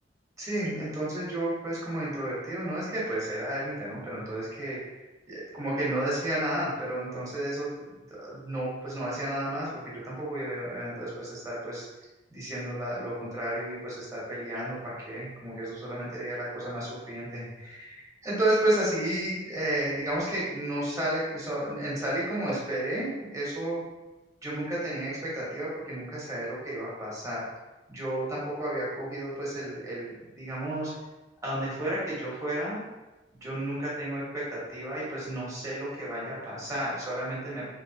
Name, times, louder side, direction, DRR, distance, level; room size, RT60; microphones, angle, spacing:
voice 1, 0.4-4.8 5.3-7.7 8.1-11.9 12.3-23.8 24.4-27.4 27.9-30.9 31.4-32.8 33.4-37.7, right 1 dB, 15° right, -6 dB, 1.1 m, -32 dB
3.5 x 3.0 x 2.8 m, 1.1 s
head